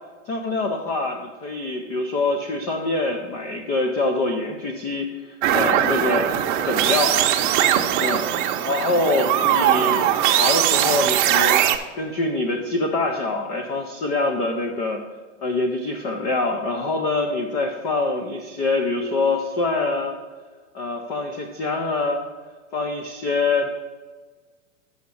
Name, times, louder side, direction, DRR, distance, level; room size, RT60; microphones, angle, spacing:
voice 1, 0.3-6.3 6.6-7.2 8.0-8.3 8.6-11.6 11.9-15.0 15.4-20.1 20.7-22.2 22.7-23.7, left 2 dB, 20° left, 4 dB, 0.3 m, -25 dB
sound 1, 5.4-11.8, right 11 dB, 40° right, 0.7 m, -20 dB
6.3 x 5.8 x 6.8 m, 1.4 s
hypercardioid pair, 140°, 37 cm